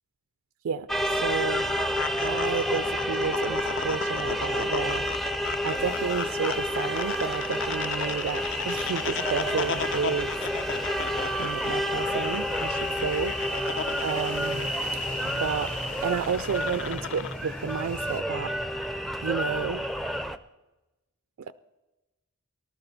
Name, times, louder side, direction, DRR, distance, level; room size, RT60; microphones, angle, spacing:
voice 1, 0.6-1.6 2.2-5.1 5.6-10.3 11.4-13.4 14.0-14.7 15.2-15.7 16.0-18.5 19.2-19.9 21.5-21.6, right 6 dB, 65° right, 12 dB, 0.4 m, -31 dB
sound 1, 0.9-20.4, equal, ahead, 0.4 m, -30 dB
sound 2, 1.1-17.3, left 6 dB, 60° left, 0.6 m, -36 dB
sound 3, 5.8-18.2, left 4 dB, 80° left, 1.7 m, -45 dB
19.0 x 12.0 x 4.0 m, 1.1 s
head